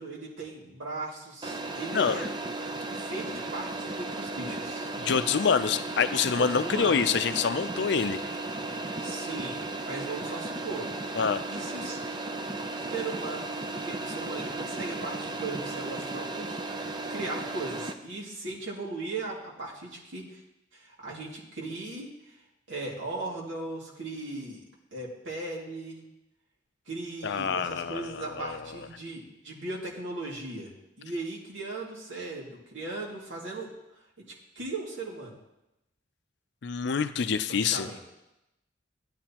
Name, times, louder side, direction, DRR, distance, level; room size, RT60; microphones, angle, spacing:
voice 1, 0.0-2.2 2.9-4.9 6.4-7.0 9.0-10.9 11.5-12.0 12.9-16.6 17.1-20.4 20.7-22.4 22.7-24.6 24.9-26.0 26.9-30.7 31.0-33.7 34.6-35.4 37.5-38.0, right 2 dB, 80° right, -4 dB, 2.4 m, -38 dB
sound 1, 1.4-17.9, right 2 dB, 25° right, 0.5 m, -35 dB
voice 2, 1.9-2.2 5.0-8.2 11.1-11.5 27.2-28.7 36.6-37.9, left 6 dB, 60° left, 11 dB, 0.5 m, -26 dB
14.5 x 9.6 x 2.9 m, 0.92 s
head